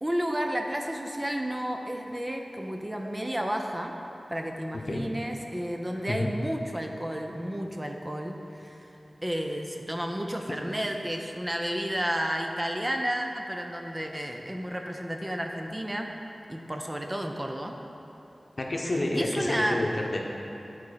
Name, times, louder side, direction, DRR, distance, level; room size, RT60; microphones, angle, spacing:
voice 1, 0.0-4.0 4.3-16.1 16.5-17.8 19.1-19.9, equal, 15° right, 2 dB, 0.5 m, -32 dB
voice 2, 18.6-20.2, left 1 dB, 50° left, 0 dB, 0.8 m, -29 dB
10.5 x 4.1 x 4.9 m, 2.9 s
wide cardioid pair, 85°, 0 cm